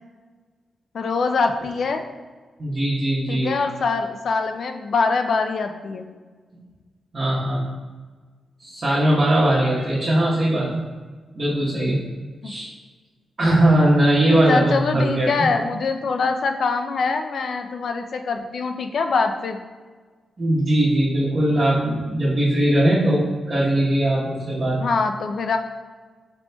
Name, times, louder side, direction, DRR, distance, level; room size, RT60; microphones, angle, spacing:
voice 1, 0.9-2.1 3.3-6.1 12.4-12.5 14.5-19.6 24.8-25.6, left 4 dB, 60° left, 5 dB, 0.3 m, -23 dB
voice 2, 2.6-3.5 7.1-7.6 8.6-10.8 11.3-12.0 12.4-12.7 13.4-15.5 20.4-24.8, right 1 dB, 35° right, -10 dB, 0.9 m, -20 dB
4.3 x 4.1 x 2.2 m, 1.4 s
wide cardioid pair, 120°, 0 cm